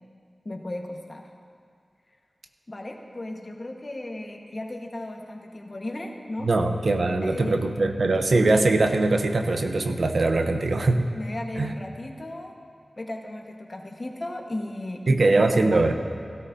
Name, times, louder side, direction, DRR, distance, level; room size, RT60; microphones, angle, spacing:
voice 1, 0.4-1.3 2.7-6.5 7.2-7.6 11.1-12.5 13.0-15.9, left 1 dB, 45° left, 2 dB, 1.3 m, -35 dB
voice 2, 6.4-11.1 11.6-11.7 15.1-15.9, right 2 dB, 75° right, 5 dB, 0.8 m, -21 dB
17.0 x 12.5 x 2.7 m, 2.2 s
cardioid pair, 50°, 0 cm